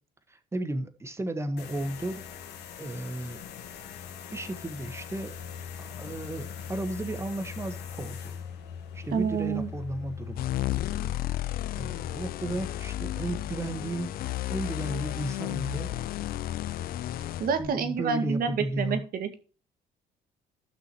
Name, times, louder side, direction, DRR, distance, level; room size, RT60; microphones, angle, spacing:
voice 1, 0.3-2.3 2.8-3.4 4.3-5.4 5.8-8.4 8.9-10.5 10.8-11.1 11.7-14.2 14.5-16.1 17.6-19.0, right 1 dB, 15° right, 9 dB, 1.5 m, -34 dB
sound 1, 1.6-17.7, left 7 dB, 80° left, 2.1 m, -42 dB
voice 2, 9.1-9.7 17.4-19.4, right 6 dB, 60° right, 8 dB, 2.0 m, -28 dB
sound 2, 10.4-17.5, left 14 dB, 60° left, 0.5 m, -33 dB
15.0 x 6.1 x 3.1 m, 0.37 s
cardioid pair, 110°, 17 cm